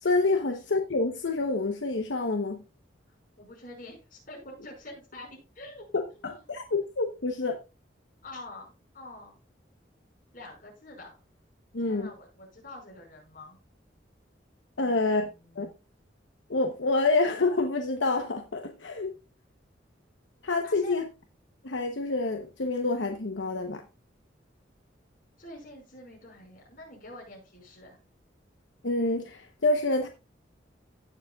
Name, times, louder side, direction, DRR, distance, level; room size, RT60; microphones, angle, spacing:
voice 1, 0.0-2.6 5.9-7.6 11.7-12.1 14.8-15.3 15.6-15.7 16.5-19.1 20.4-21.0 21.6-23.8 28.8-30.1, left 3 dB, 85° left, 1.0 m, -27 dB
voice 2, 3.4-5.9 6.3-6.4 8.2-9.3 10.3-11.2 11.9-13.6 14.8-15.7 20.6-21.0 25.4-28.0, left 1 dB, 50° left, 5.4 m, -46 dB
16.5 x 6.9 x 2.4 m
head